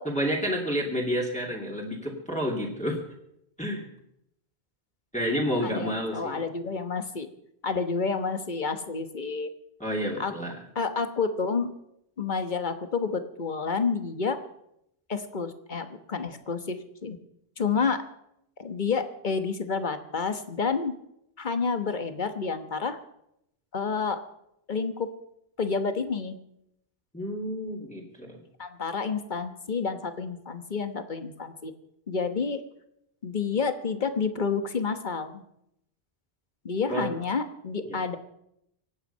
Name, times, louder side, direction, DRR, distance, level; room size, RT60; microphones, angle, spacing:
voice 1, 0.0-3.0 3.6-3.9 5.1-6.4 9.8-10.6 27.1-28.4 36.9-37.1 37.9-38.0, equal, 5° left, -3 dB, 2.4 m, -30 dB
voice 2, 5.6-7.3 7.6-9.5 10.2-10.3 10.7-11.7 12.2-14.4 15.1-17.2 17.6-18.0 18.6-20.9 21.4-23.0 23.7-24.2 24.7-25.1 25.6-26.4 28.6-31.7 32.1-32.6 33.2-35.4 36.6-38.2, left 5 dB, 50° left, 9 dB, 1.3 m, -29 dB
24.5 x 9.1 x 5.5 m, 0.77 s
omnidirectional pair, 1.1 m